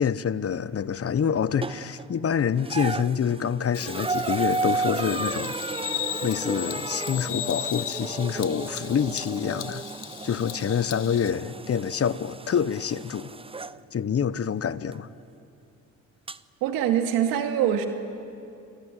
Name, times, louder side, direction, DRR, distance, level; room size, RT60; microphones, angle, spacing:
voice 1, 0.0-5.5 6.2-9.8 10.2-13.3 13.9-15.1, left 7 dB, 45° left, 1.0 m, -26 dB
sound 1, 1.6-2.1 2.6-13.8 14.9-15.0 16.3-16.4, right 3 dB, 15° right, 0.7 m, -33 dB
Bird vocalization bird call bird song, 3.7-11.3, left 13 dB, 65° left, 0.8 m, -37 dB
voice 2, 16.6-17.9, right 10 dB, 90° right, 2.3 m, -23 dB
27.5 x 22.0 x 9.2 m
supercardioid pair, 65°, 34 cm